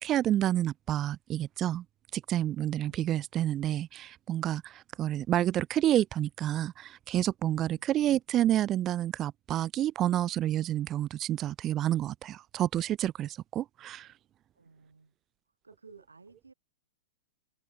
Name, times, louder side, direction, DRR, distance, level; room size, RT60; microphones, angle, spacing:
voice 1, 0.0-1.8 2.1-4.7 5.0-14.1, right 12 dB, 30° right, 0.7 m, -29 dB
voice 2, 2.8-3.3 7.7-7.9 14.5-15.1 15.5-16.5, right 4 dB, 90° right, 8.0 m, -57 dB
open air
hypercardioid pair, 105°, 0 cm